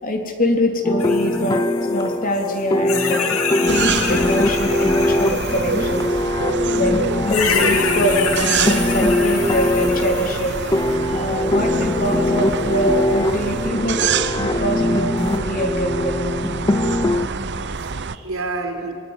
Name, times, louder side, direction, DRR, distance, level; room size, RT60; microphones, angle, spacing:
voice 1, 0.0-3.3 3.6-6.1 6.8-7.0 7.3-10.5 11.1-14.1 14.4-16.2, equal, 40° left, 3 dB, 3.5 m, -23 dB
sound 1, 0.8-17.3, left 1 dB, 20° left, 0.6 m, -22 dB
sound 2, 1.0-2.6 2.8-6.2 7.3-10.9 12.1-12.2 15.2-15.4, left 5 dB, 80° left, 2.9 m, -27 dB
sound 3, 3.7-18.2, right 5 dB, 55° right, 0.9 m, -27 dB
voice 2, 6.5-7.1 11.1-11.3 16.8-18.9, right 2 dB, 70° right, 4 dB, 4.7 m, -31 dB
25.0 x 21.5 x 9.9 m, 2.4 s
head